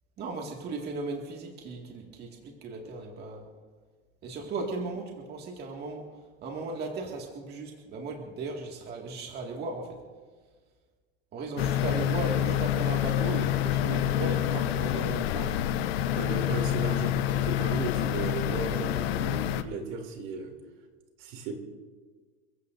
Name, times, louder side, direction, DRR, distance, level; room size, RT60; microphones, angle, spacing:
voice 1, 0.2-3.5 4.2-10.0 11.3-15.6, right 3 dB, 35° right, 0 dB, 2.1 m, -36 dB
sound 1, 11.6-19.6, left 12 dB, 80° left, 0.9 m, -27 dB
voice 2, 13.9-14.3 16.2-20.5 21.2-21.6, right 4 dB, 60° right, 3 dB, 3.0 m, -35 dB
29.5 x 15.5 x 2.6 m, 1.4 s
supercardioid pair, 140°, 30 cm